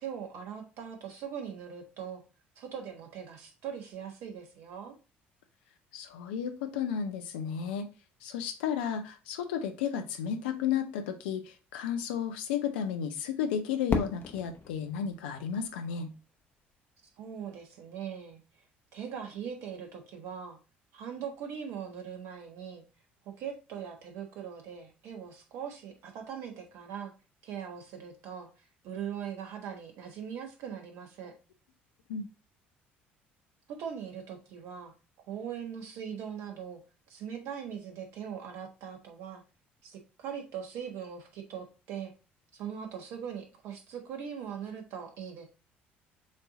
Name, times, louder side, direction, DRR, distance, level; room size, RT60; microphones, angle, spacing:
voice 1, 0.0-2.2 2.6-4.9 17.2-18.4 18.9-20.6 20.9-22.8 23.2-27.1 27.4-28.5 28.8-31.3 33.7-34.9 35.3-36.8 37.1-39.4 39.8-42.1 42.6-45.5, right 8 dB, 60° right, 4 dB, 1.3 m, -40 dB
voice 2, 5.9-7.9 8.2-16.1 32.1-32.3, left 8 dB, 70° left, 7 dB, 0.7 m, -33 dB
Fireworks, 13.9-16.8, left 4 dB, 40° left, 0.9 m, -36 dB
7.3 x 2.8 x 2.6 m, 0.31 s
figure-of-eight pair, 55°, 6 cm